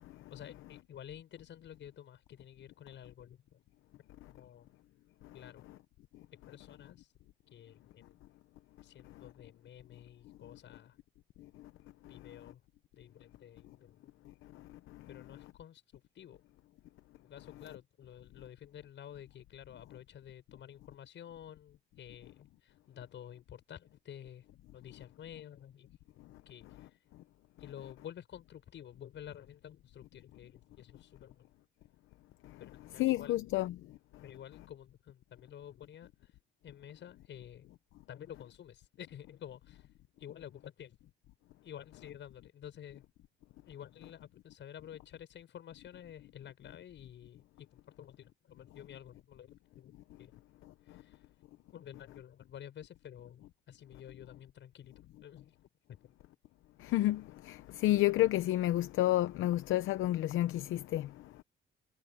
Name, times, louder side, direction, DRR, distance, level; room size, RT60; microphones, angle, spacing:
voice 1, 0.3-3.6 4.3-4.7 5.3-5.6 6.5-7.1 7.5-8.2 8.8-11.0 12.1-12.6 12.9-14.1 15.1-16.4 17.2-24.4 24.7-25.9 26.5-26.7 27.6-31.5 32.6-33.4 34.2-36.3 36.6-37.7 38.1-39.9 40.2-40.9 41.6-43.0 43.7-50.3 50.9-51.2 51.7-54.9 55.2-55.7 56.0-56.1, left 10 dB, 70° left, 6.5 m, -51 dB
voice 2, 33.0-33.8 56.8-61.1, left 15 dB, 85° left, 0.8 m, -30 dB
cardioid pair, 90°, 20 cm